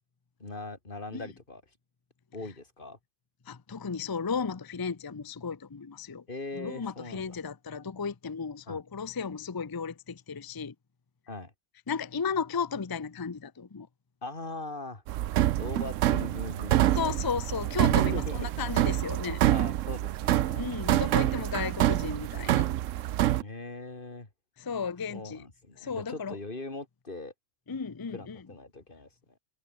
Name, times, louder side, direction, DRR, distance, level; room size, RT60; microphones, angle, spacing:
voice 1, 0.4-1.6 2.3-3.0 6.3-7.4 8.7-8.8 11.3-11.5 14.2-15.0 15.4-16.9 17.8-18.5 19.5-20.6 20.9-21.5 23.4-24.3 25.1-27.3 28.1-29.1, left 2 dB, 45° left, 3.4 m, -40 dB
voice 2, 3.5-6.2 6.5-10.7 11.9-13.9 16.9-19.4 20.5-22.7 24.6-25.5 25.8-26.4 27.7-28.4, left 6 dB, 25° left, 0.6 m, -34 dB
sound 1, 15.1-23.4, right 13 dB, 90° right, 1.0 m, -26 dB
omnidirectional pair, 1.3 m